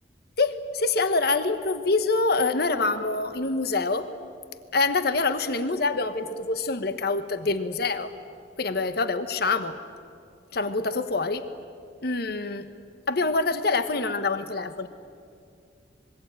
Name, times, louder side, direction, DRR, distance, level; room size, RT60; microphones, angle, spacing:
voice 1, 0.4-4.1 4.7-8.1 8.6-9.7 10.5-11.5 12.0-12.7 13.1-14.9, left 3 dB, 60° left, 10 dB, 1.1 m, -25 dB
25.5 x 22.5 x 8.9 m, 2.4 s
head